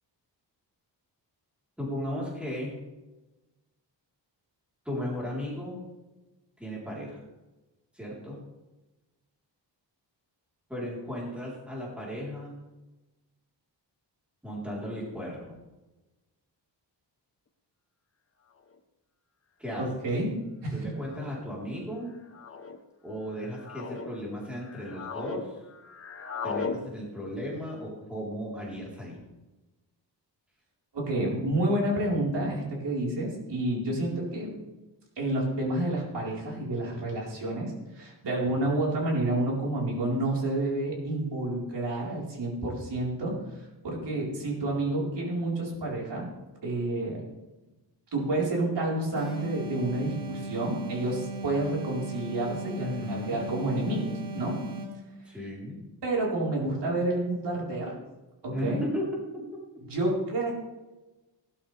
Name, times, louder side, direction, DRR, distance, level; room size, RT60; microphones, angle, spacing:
voice 1, 1.8-2.8 4.8-5.8 6.6-7.2 7.9-8.5 10.7-12.6 14.4-15.6 19.6-19.9 20.7-22.2 23.0-25.6 26.4-29.2 52.8-53.4 55.3-55.8 58.5-59.6, equal, ahead, -5 dB, 3.9 m, -35 dB
sound 1, 18.7-18.8 19.8-20.1 21.0-21.4 22.3-22.8 23.4-24.1 24.6-25.4 25.7-26.8, left 5 dB, 30° left, 1.0 m, -37 dB
voice 2, 19.8-20.3 20.6-20.9 30.9-34.6 35.2-46.3 46.6-47.2 48.1-54.6 56.0-58.0 58.4-58.8 59.9-60.5, right 1 dB, 70° right, -3 dB, 4.5 m, -29 dB
sound 2, 49.2-55.1, right 2 dB, 50° right, 3.3 m, -37 dB
18.5 x 12.5 x 3.4 m, 1.1 s
wide cardioid pair, 180°, 44 cm